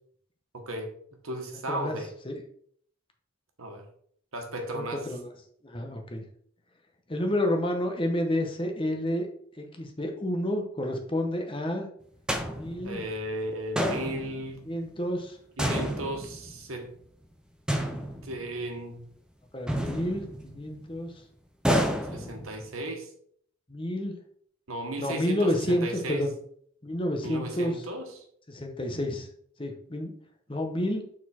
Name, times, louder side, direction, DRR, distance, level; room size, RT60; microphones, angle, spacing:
voice 1, 0.5-0.9 1.2-2.1 3.6-3.9 4.3-5.1 12.8-14.6 15.6-16.9 18.2-19.0 22.1-23.1 24.7-26.2 27.2-28.2, right 1 dB, 80° right, 4 dB, 1.4 m, -35 dB
voice 2, 1.7-2.0 2.2-2.4 4.7-5.3 5.6-6.2 7.1-9.3 9.6-11.9 12.5-13.0 14.7-15.4 19.5-21.1 22.2-22.3 23.7-24.1 25.0-26.3 26.8-27.8 28.5-29.3 29.6-30.1 30.5-31.0, left 1 dB, 25° left, 4 dB, 0.9 m, -30 dB
sound 1, 12.3-13.2 13.8-14.6 15.6-16.8 17.7-18.6 19.7-20.7 21.6-22.7, equal, 5° right, 0.5 m, -30 dB
7.0 x 4.2 x 4.3 m, 0.62 s
head